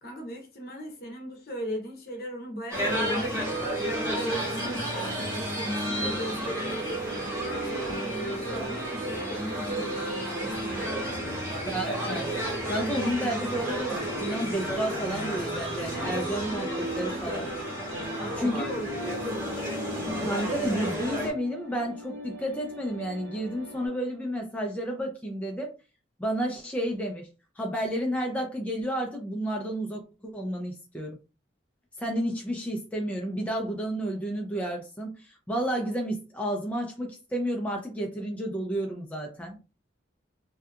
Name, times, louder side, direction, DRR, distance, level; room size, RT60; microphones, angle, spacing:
voice 1, 0.0-11.2 18.0-19.5, equal, 55° left, 0.7 m, -38 dB
sound 1, 2.7-21.3, right 1 dB, 15° right, 1.0 m, -31 dB
sound 2, 4.6-23.9, equal, 80° right, 1.2 m, -44 dB
voice 2, 11.6-12.3 12.7-17.5 18.3-18.7 20.2-25.7 26.2-27.3 27.6-31.2 32.0-39.6, right 1 dB, 10° left, 0.3 m, -31 dB
2.7 x 2.3 x 2.3 m
head